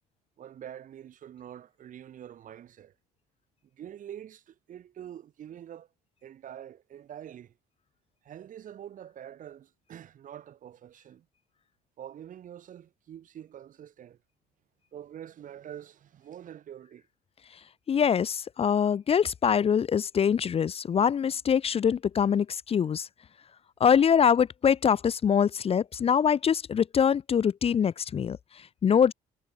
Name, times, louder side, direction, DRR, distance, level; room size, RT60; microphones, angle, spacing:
voice 1, 0.4-2.9 3.7-5.9 6.2-7.5 8.2-11.3 12.0-14.2 14.9-17.0, right 10 dB, 60° right, 7.0 m, -45 dB
voice 2, 17.9-23.1 23.8-29.1, left 7 dB, 40° left, 0.7 m, -24 dB
cardioid pair, 85°, 15 cm